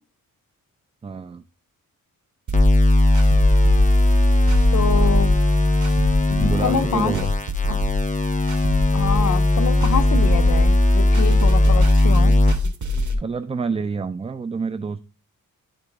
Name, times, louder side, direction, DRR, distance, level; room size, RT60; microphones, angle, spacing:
voice 1, 1.0-1.4 6.4-7.3 13.2-15.0, right 5 dB, 20° right, 0.3 m, -27 dB
sound 1, 2.5-12.5, left 1 dB, 20° left, 0.7 m, -17 dB
sound 2, 2.5-13.1, left 2 dB, 55° right, 1.4 m, -26 dB
voice 2, 4.7-5.3 6.3-7.1 7.7-7.8 8.9-12.4, left 6 dB, 55° left, 0.7 m, -26 dB
11.0 x 3.9 x 3.5 m
wide cardioid pair, 100°, 35 cm